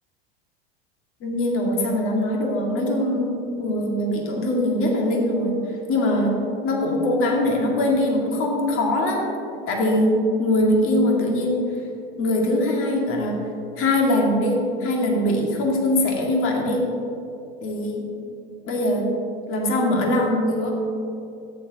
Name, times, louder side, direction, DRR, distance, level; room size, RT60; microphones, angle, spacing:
voice 1, 1.2-5.6 5.9-9.3 9.7-11.7 12.2-13.5 13.8-16.9 17.6-18.1 18.6-19.1 19.5-20.7, left 1 dB, 45° left, -1 dB, 2.3 m, -22 dB
13.5 x 9.7 x 3.0 m, 2.7 s
hypercardioid pair, 85°, 30 cm